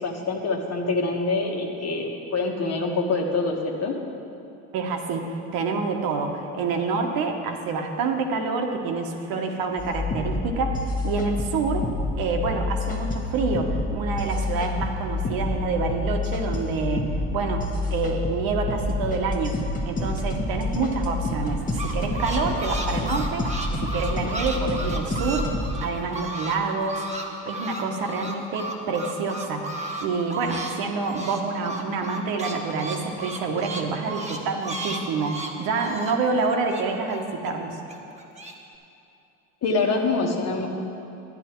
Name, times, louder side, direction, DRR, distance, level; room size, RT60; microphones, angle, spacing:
voice 1, 0.0-3.9 39.6-40.7, left 3 dB, 45° left, 2 dB, 1.4 m, -25 dB
voice 2, 4.7-11.9 12.2-25.5 25.8-27.0 27.4-37.8, right 4 dB, 70° right, 3 dB, 1.2 m, -27 dB
sound 1, 9.8-25.8, left 2 dB, 20° left, 1.2 m, -28 dB
sound 2, 21.4-26.6 26.8-30.8 31.0-37.5 37.9-38.5, right 2 dB, 20° right, 1.2 m, -34 dB
10.5 x 10.0 x 4.5 m, 2.8 s
supercardioid pair, 100°, 37 cm